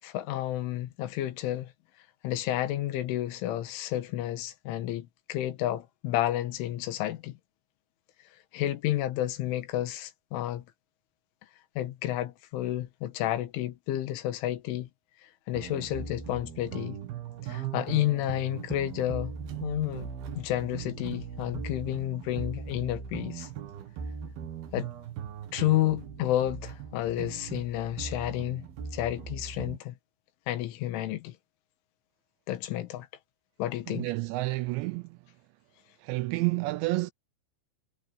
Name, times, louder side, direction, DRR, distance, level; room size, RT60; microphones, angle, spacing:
voice 1, 0.0-1.7 2.2-7.4 8.5-10.7 11.8-14.9 15.2-17.0 17.4-23.5 24.7-24.9 25.5-28.7 28.9-30.0 30.5-31.4 32.5-33.1 33.6-34.1, left 13 dB, 80° left, 3.7 m, -31 dB
sound 1, 15.5-29.8, right 7 dB, 60° right, 3.4 m, -39 dB
voice 2, 33.9-35.2 36.0-37.1, right 21 dB, 80° right, 2.7 m, -30 dB
omnidirectional pair, 5.6 m